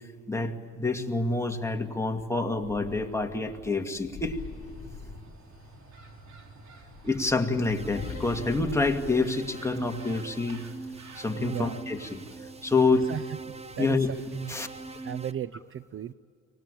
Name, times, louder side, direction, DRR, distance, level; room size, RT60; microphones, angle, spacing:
voice 1, 0.3-4.4 7.0-10.6 11.2-12.2 12.6-13.1 13.8-14.1 14.5-14.7, left 3 dB, 10° left, 3 dB, 2.2 m, -27 dB
sound 1, 2.6-5.8 6.7-10.4, left 7 dB, 50° left, 2.0 m, -44 dB
sound 2, 4.3-15.3, right 3 dB, 60° right, 4.1 m, -52 dB
sound 3, 7.6-15.3, right 3 dB, 20° right, 1.0 m, -43 dB
voice 2, 11.4-11.8 13.1-13.2 13.8-14.5 15.0-16.1, right 9 dB, 45° right, 16 dB, 0.6 m, -35 dB
24.5 x 19.5 x 8.8 m, 2.2 s
cardioid pair, 90°, 30 cm